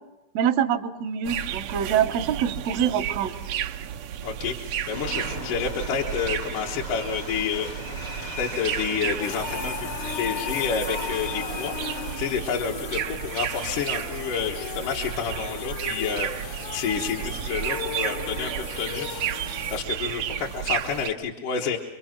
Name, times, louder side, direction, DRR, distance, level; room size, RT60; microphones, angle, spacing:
voice 1, 0.3-3.3, right 9 dB, 65° right, 4 dB, 1.8 m, -25 dB
sound 1, 1.2-21.1, right 10 dB, 85° right, 1.4 m, -33 dB
voice 2, 4.2-7.7 8.4-11.8 12.2-19.2 19.7-21.8, left 6 dB, 65° left, -2 dB, 2.7 m, -29 dB
sound 2, 4.9-12.2, left 1 dB, 35° left, 1.1 m, -37 dB
sound 3, 9.2-19.8, left 8 dB, 85° left, 3.5 m, -37 dB
28.5 x 23.0 x 5.9 m, 1.0 s
omnidirectional pair, 4.3 m